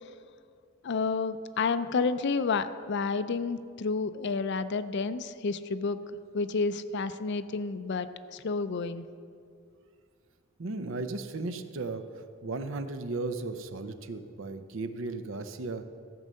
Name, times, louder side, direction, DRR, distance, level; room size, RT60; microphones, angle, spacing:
voice 1, 0.8-6.0 6.3-9.0, left 4 dB, 55° left, 12 dB, 0.5 m, -30 dB
voice 2, 10.6-15.8, right 3 dB, 65° right, 9 dB, 0.7 m, -36 dB
14.0 x 5.4 x 7.5 m, 2.3 s
head